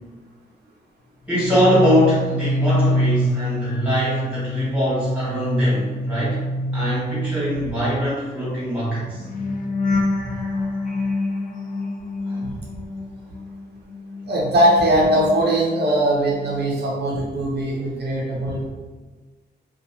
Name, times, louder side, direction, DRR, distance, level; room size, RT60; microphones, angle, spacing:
sound 1, 1.3-13.6 13.9-16.0 16.3-16.6, left 1 dB, 50° left, 0.4 m, -26 dB
voice 1, 1.3-6.4 6.7-9.2 12.3-12.4 17.8-18.5, equal, 5° right, -10 dB, 1.4 m, -23 dB
voice 2, 14.3-18.7, right 1 dB, 70° right, -4 dB, 0.5 m, -20 dB
2.7 x 2.2 x 2.7 m, 1.3 s
wide cardioid pair, 155°, 18 cm